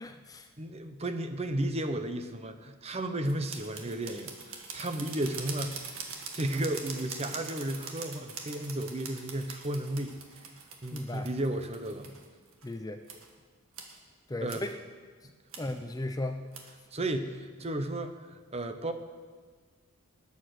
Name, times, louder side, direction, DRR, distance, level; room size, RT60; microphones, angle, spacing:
voice 1, 0.0-0.5 10.9-11.3 12.6-13.0 14.3-14.8 15.6-16.4, left 1 dB, 15° left, 7 dB, 0.5 m, -36 dB
voice 2, 0.6-10.2 10.8-12.1 14.4-14.6 16.9-18.9, right 1 dB, 25° right, 8 dB, 0.8 m, -34 dB
sound 1, 3.2-12.7 13.1-13.3 13.7-14.0 14.5-14.7 15.5-15.8 16.5-16.7, right 5 dB, 65° right, 1.9 m, -43 dB
20.0 x 8.4 x 6.4 m, 1.5 s
head